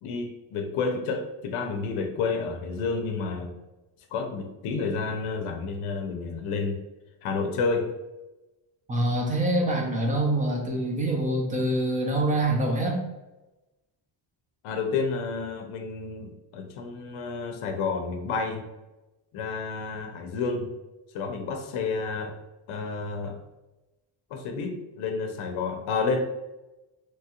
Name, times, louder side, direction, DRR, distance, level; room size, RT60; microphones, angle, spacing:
voice 1, 0.0-3.5 4.1-6.8 7.2-7.9 14.6-18.7 19.3-20.7 21.1-22.4 22.7-23.4 24.3-26.2, left 4 dB, 75° left, 5 dB, 0.6 m, -30 dB
voice 2, 8.9-13.0, right 1 dB, 15° right, -1 dB, 0.4 m, -25 dB
3.0 x 2.3 x 2.8 m, 1.0 s
cardioid pair, 170°, 49 cm